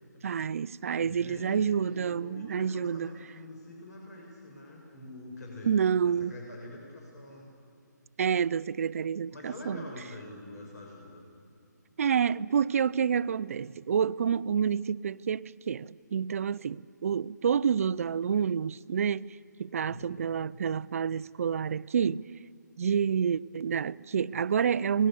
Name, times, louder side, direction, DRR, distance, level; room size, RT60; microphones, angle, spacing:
voice 1, 0.2-3.1 5.6-6.3 8.2-9.8 12.0-22.2 22.8-25.1, right 7 dB, 50° right, 0.5 m, -28 dB
voice 2, 1.0-5.7 6.0-7.5 9.3-11.2 19.8-20.1, left 1 dB, 60° left, 6.6 m, -45 dB
29.0 x 20.5 x 7.1 m
figure-of-eight pair, 150°, 10 cm